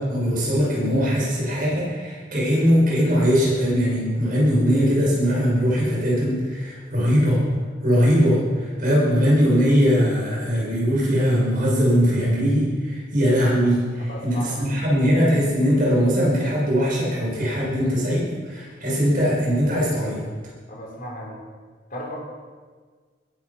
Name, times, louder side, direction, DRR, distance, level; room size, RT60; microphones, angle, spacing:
voice 1, 0.0-7.4 7.8-20.2, equal, 50° right, -5 dB, 6.1 m, -20 dB
voice 2, 14.0-15.0 20.7-21.4 21.9-22.2, left 1 dB, 50° left, -2 dB, 4.2 m, -35 dB
20.5 x 9.7 x 5.9 m, 1.5 s
head